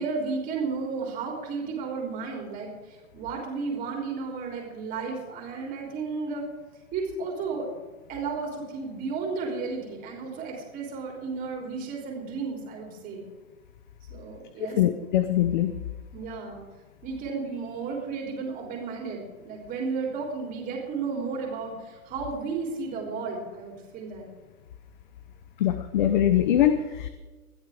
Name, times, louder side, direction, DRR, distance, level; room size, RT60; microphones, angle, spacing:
voice 1, 0.0-6.4 6.9-7.7 8.1-13.3 14.1-14.8 16.1-16.6 17.0-24.3, right 4 dB, 20° right, 0 dB, 3.5 m, -33 dB
voice 2, 14.8-15.7 25.6-27.1, left 11 dB, 35° left, 10 dB, 0.8 m, -22 dB
20.5 x 13.0 x 3.6 m, 1.2 s
hypercardioid pair, 160°, 43 cm